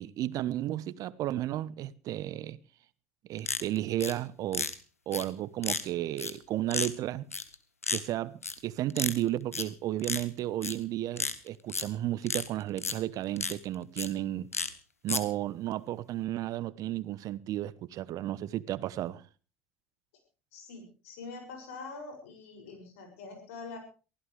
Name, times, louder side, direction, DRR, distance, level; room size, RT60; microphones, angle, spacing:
voice 1, 0.0-2.6 3.3-4.7 5.1-7.2 7.9-14.5 15.0-19.2, right 13 dB, 50° right, 1.0 m, -33 dB
sound 1, 3.4-4.1 4.5-4.7 5.1-5.2 5.6-5.8 6.2-6.3 6.7-6.9 7.3-7.6 7.8-8.0 8.4-8.6 8.9-9.2 9.5-9.6 10.0-10.2 10.6-10.7 11.2-11.8 12.3-12.5 12.8-12.9 13.4-13.5 14.0-14.1 14.5-14.7 15.1-15.2, left 4 dB, 90° left, 1.2 m, -32 dB
voice 2, 20.5-23.8, left 4 dB, 70° left, 6.9 m, -44 dB
23.5 x 15.5 x 3.4 m
figure-of-eight pair, 65°, 8 cm